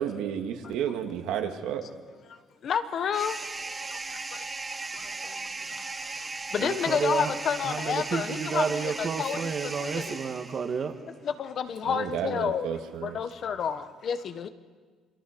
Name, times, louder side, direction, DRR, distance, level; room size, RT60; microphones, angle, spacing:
voice 1, 0.0-1.8 11.8-13.2, right 9 dB, 75° right, 4 dB, 2.1 m, -32 dB
voice 2, 2.6-3.3 6.5-9.5 10.0-10.1 11.4-12.7 13.1-14.5, left 7 dB, 40° left, 11 dB, 1.0 m, -29 dB
sound 1, 3.1-10.9, right 3 dB, 15° right, 0.9 m, -37 dB
voice 3, 6.6-7.3 7.6-10.9, right 6 dB, 30° right, 7 dB, 1.5 m, -31 dB
28.0 x 24.0 x 5.2 m, 1.5 s
cardioid pair, 170°, 0 cm